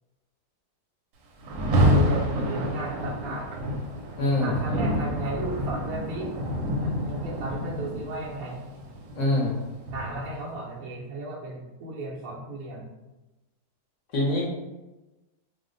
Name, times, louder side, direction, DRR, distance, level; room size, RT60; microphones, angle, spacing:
Rain, 1.4-10.5, equal, 85° right, 1.2 m, -28 dB
voice 1, 1.9-3.6 4.4-6.3 6.8-8.7 9.9-12.9, right 2 dB, 70° right, -5 dB, 0.9 m, -35 dB
voice 2, 4.2-4.5 9.2-9.5 14.1-14.5, left 1 dB, 60° left, -3 dB, 0.9 m, -24 dB
2.8 x 2.1 x 3.8 m, 1.1 s
omnidirectional pair, 1.8 m